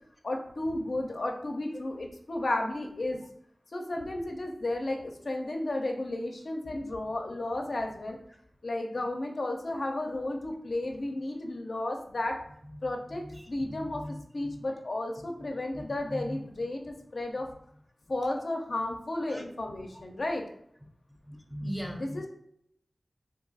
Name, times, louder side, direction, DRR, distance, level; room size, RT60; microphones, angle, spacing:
voice 1, 0.2-3.2 3.7-8.2 8.6-12.4 12.8-14.0 14.3-17.5 18.1-20.4 22.0-22.3, left 1 dB, 60° left, 2 dB, 0.5 m, -33 dB
voice 2, 12.7-14.7 15.4-16.4 19.3-19.4 19.9-20.0 21.2-22.3, equal, ahead, 0 dB, 0.6 m, -41 dB
2.6 x 2.3 x 3.9 m, 0.71 s
wide cardioid pair, 80°, 0 cm